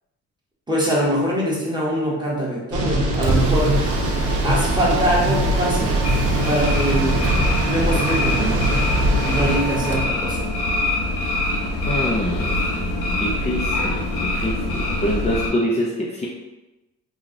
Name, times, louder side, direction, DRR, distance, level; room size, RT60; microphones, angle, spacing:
voice 1, 0.7-3.8 4.4-5.9 6.4-7.3 7.7-8.6 9.2-10.5, equal, 15° right, -5 dB, 1.2 m, -23 dB
sound 1, 2.7-9.6, right 1 dB, 80° right, 0.8 m, -22 dB
Mechanisms, 2.9-10.2, right 2 dB, 55° right, 0.6 m, -30 dB
sound 2, 6.0-15.5, left 2 dB, 85° left, 1.0 m, -24 dB
voice 2, 11.9-16.3, equal, 20° left, -4 dB, 0.5 m, -26 dB
3.2 x 2.3 x 3.7 m, 1.0 s
cardioid pair, 90°, 30 cm